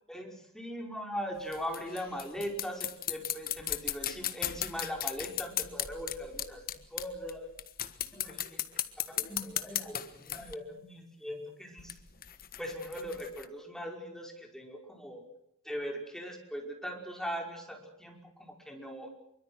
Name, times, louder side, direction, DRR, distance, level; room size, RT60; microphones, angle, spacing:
voice 1, 0.1-6.6 6.9-7.5 8.1-8.7 9.1-12.0 12.6-15.2 15.6-19.1, equal, ahead, 2 dB, 5.4 m, -40 dB
sound 1, 1.4-7.3 7.6-10.5 11.8-13.5, left 11 dB, 45° left, 1.5 m, -36 dB
26.5 x 24.0 x 6.4 m, 0.78 s
head